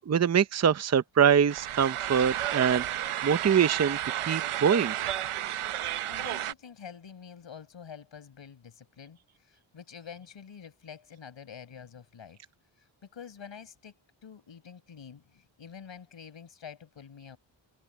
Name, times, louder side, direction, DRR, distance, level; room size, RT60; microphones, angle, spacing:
voice 1, 0.1-4.9, right 7 dB, 30° right, 0.7 m, -24 dB
sound 1, 1.5-6.5, right 12 dB, 80° right, 0.9 m, -32 dB
voice 2, 6.1-12.4 13.1-17.4, left 7 dB, 60° left, 6.7 m, -47 dB
cardioid pair, 95°, 50 cm